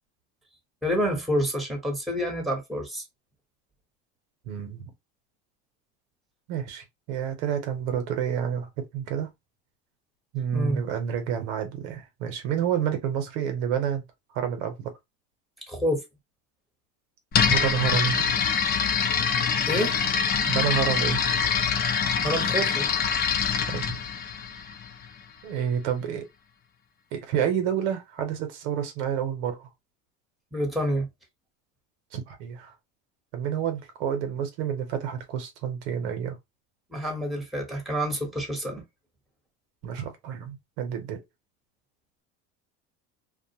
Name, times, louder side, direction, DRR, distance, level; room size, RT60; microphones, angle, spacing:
voice 1, 0.8-3.0 10.5-10.8 15.7-16.0 19.7-19.9 22.2-22.9 30.5-31.1 36.9-38.8, equal, ahead, 1.0 m, -28 dB
voice 2, 4.4-4.9 6.5-9.3 10.3-14.0 14.3-14.9 17.5-18.3 20.5-21.3 23.7-24.0 25.4-26.2 27.1-29.7 32.1-32.7 33.3-36.4 39.8-41.2, right 8 dB, 80° right, 0.9 m, -29 dB
sound 1, 17.3-25.1, left 6 dB, 30° left, 0.4 m, -25 dB
2.4 x 2.1 x 2.8 m
supercardioid pair, 110°, 33 cm